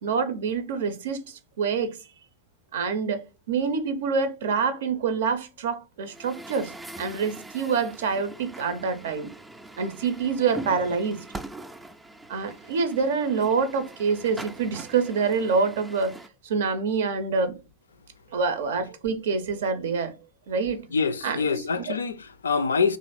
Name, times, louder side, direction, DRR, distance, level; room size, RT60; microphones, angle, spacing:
voice 1, 0.0-2.0 2.7-6.7 7.0-9.3 9.8-11.2 12.3-16.1 16.4-17.5 18.3-20.1 20.5-20.9 21.2-22.0, right 5 dB, 60° right, 0.6 m, -26 dB
Truck, 6.1-16.3, right 2 dB, 10° right, 0.4 m, -42 dB
voice 2, 20.9-23.0, left 5 dB, 70° left, 0.3 m, -25 dB
3.0 x 2.5 x 3.9 m
figure-of-eight pair, 90°, 0 cm